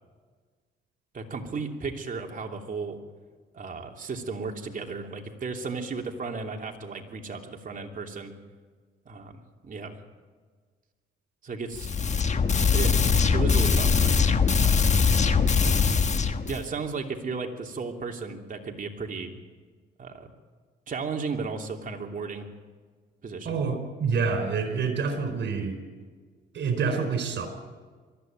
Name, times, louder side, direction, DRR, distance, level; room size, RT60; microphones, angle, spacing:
voice 1, 1.1-3.0 3.5-8.3 9.0-10.0 11.4-11.9 12.7-13.0 13.3-14.1 14.6-14.8 16.5-19.3 20.0-20.3 20.9-22.5 23.2-23.6, right 4 dB, 45° right, 2 dB, 2.9 m, -34 dB
sound 1, 11.7-16.6, left 5 dB, 35° left, 1.3 m, -22 dB
voice 2, 23.4-25.8 26.5-27.5, right 5 dB, 65° right, 6 dB, 4.6 m, -27 dB
22.5 x 14.0 x 9.2 m, 1.5 s
cardioid pair, 90°, 20 cm